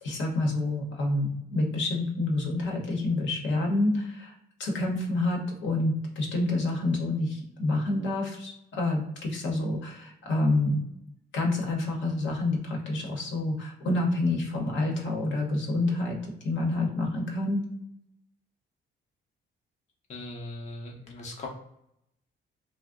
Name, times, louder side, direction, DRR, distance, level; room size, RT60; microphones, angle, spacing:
voice 1, 0.0-4.3 4.6-10.8 11.3-16.2 16.4-17.6, left 2 dB, 70° left, 0 dB, 0.9 m, -28 dB
voice 2, 20.1-21.5, left 2 dB, 35° left, 0 dB, 0.6 m, -39 dB
2.5 x 2.1 x 3.5 m, 0.78 s
cardioid pair, 90°, 20 cm